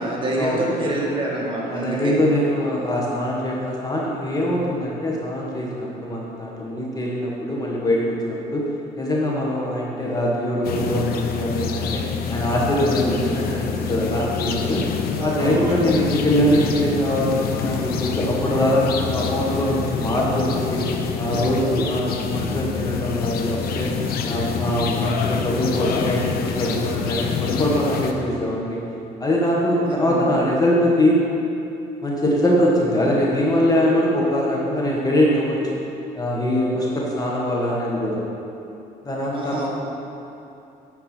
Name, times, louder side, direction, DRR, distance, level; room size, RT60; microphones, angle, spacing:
voice 1, 0.0-2.2 15.2-15.9 29.9-30.5 39.3-39.7, right 1 dB, 30° right, -4 dB, 1.9 m, -26 dB
voice 2, 1.7-8.7 9.0-12.0 12.3-14.9 15.2-20.9 21.2-23.9 24.2-28.8 29.2-31.2 32.0-35.6 36.1-38.2 39.0-39.7, equal, 20° left, -4 dB, 1.4 m, -22 dB
sound 1, 10.6-28.1, left 6 dB, 65° left, 0.7 m, -26 dB
10.0 x 4.5 x 5.9 m, 2.8 s
cardioid pair, 110°, 17 cm